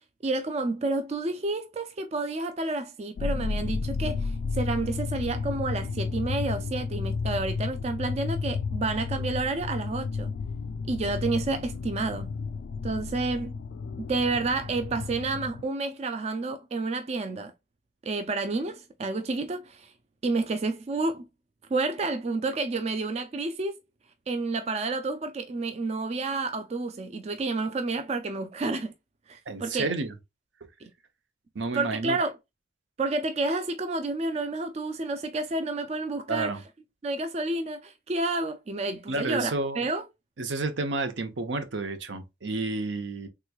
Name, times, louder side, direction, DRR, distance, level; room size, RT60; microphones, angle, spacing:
voice 1, 0.2-10.3 10.9-12.3 12.8-13.5 14.1-17.5 18.0-19.9 20.2-21.3 21.7-23.8 24.3-28.9 29.3-29.9 30.8-30.9 31.7-32.3 33.0-36.6 37.0-40.0, right 3 dB, 35° right, 0.3 m, -30 dB
sound 1, 3.2-15.6, left 4 dB, 70° left, 0.3 m, -32 dB
voice 2, 29.5-30.1 31.5-32.2 36.3-36.6 39.1-39.9 40.4-43.3, right 3 dB, 80° right, 0.7 m, -30 dB
3.5 x 3.0 x 2.3 m
head